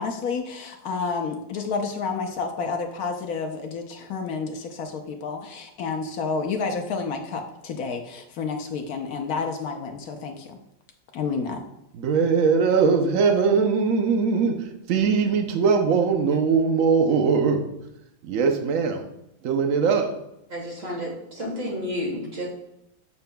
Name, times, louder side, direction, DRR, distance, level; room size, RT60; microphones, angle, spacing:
voice 1, 0.0-10.3 11.1-11.6, left 4 dB, 70° left, 4 dB, 0.8 m, -30 dB
voice 2, 11.9-17.7 18.2-19.1 19.4-20.2, right 5 dB, 80° right, 5 dB, 0.7 m, -21 dB
voice 3, 20.5-22.5, equal, 45° right, -1 dB, 1.5 m, -31 dB
7.1 x 6.6 x 2.2 m, 0.82 s
omnidirectional pair, 2.2 m